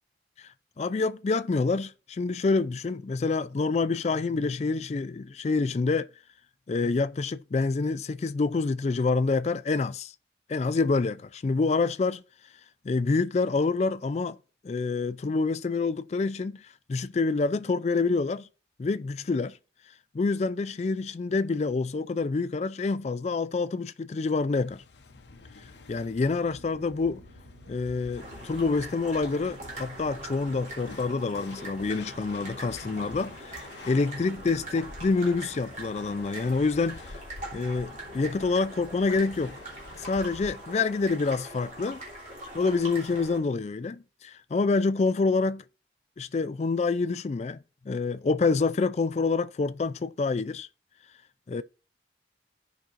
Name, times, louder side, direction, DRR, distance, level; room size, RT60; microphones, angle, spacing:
voice 1, 0.8-6.1 6.7-10.1 10.5-12.2 12.8-14.4 14.6-16.6 16.9-18.5 18.8-19.6 20.1-24.8 25.9-27.2 27.7-37.0 37.5-39.6 40.0-42.0 42.5-45.6 46.2-47.6 47.9-50.7 51.5-51.6, left 4 dB, 35° left, 0.3 m, -27 dB
sound 1, 24.6-40.6, left 3 dB, 70° left, 0.7 m, -48 dB
sound 2, 25.1-38.5, right 2 dB, 65° right, 0.9 m, -56 dB
sound 3, 28.2-43.4, right 1 dB, 40° right, 3.0 m, -42 dB
15.5 x 5.2 x 2.5 m
head